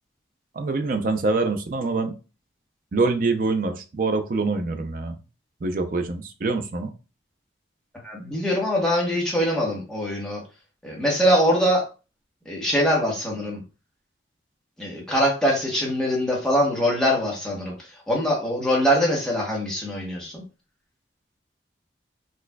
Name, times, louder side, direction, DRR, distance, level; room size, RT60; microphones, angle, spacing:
voice 1, 0.5-2.2 2.9-5.2 5.6-6.9, right 3 dB, 45° right, 7 dB, 0.4 m, -25 dB
voice 2, 8.0-10.4 10.8-11.8 12.4-13.6 14.8-20.4, equal, 5° left, -3 dB, 1.0 m, -23 dB
4.3 x 2.4 x 2.2 m, 0.32 s
head